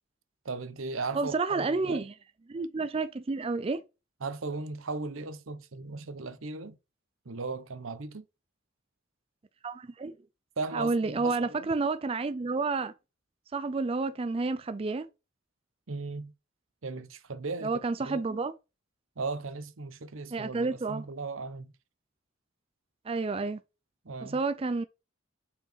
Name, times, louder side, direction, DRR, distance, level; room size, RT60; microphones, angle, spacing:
voice 1, 0.4-2.1 4.2-6.8 7.2-8.3 10.6-11.7 15.9-16.3 16.8-18.2 19.2-21.7 24.0-24.4, right 3 dB, 80° right, 0.8 m, -37 dB
voice 2, 1.1-2.1 2.5-3.8 9.6-10.2 10.7-12.9 13.5-15.1 17.6-18.5 20.3-21.0 23.1-23.6 24.2-24.8, right 3 dB, 30° right, 0.4 m, -30 dB
5.3 x 4.7 x 4.4 m
head